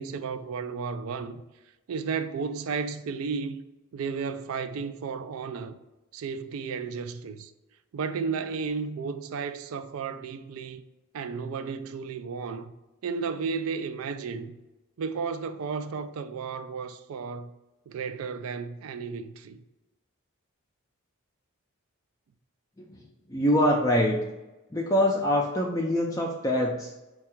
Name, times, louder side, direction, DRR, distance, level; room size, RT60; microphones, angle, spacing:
voice 1, 0.0-1.4 1.9-3.6 3.9-5.8 6.1-7.5 7.9-10.8 11.1-12.7 13.0-14.6 15.0-17.5 17.9-19.6, right 5 dB, 75° right, 0.3 m, -33 dB
voice 2, 23.3-24.2 24.7-26.9, left 1 dB, 15° left, 0.3 m, -24 dB
4.6 x 2.3 x 4.4 m
head